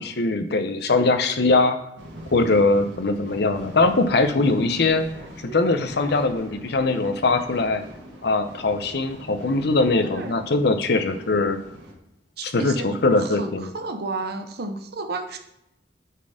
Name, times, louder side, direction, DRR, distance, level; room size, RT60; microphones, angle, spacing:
voice 1, 0.0-1.8 2.3-5.1 5.5-7.8 8.2-11.6 12.4-13.7, left 3 dB, 65° left, 8 dB, 0.7 m, -21 dB
sound 1, 2.0-11.9, right 1 dB, 85° right, 2.1 m, -42 dB
voice 2, 10.0-10.4 12.4-15.4, right 3 dB, 60° right, 6 dB, 0.8 m, -32 dB
9.1 x 4.3 x 4.9 m, 0.82 s
head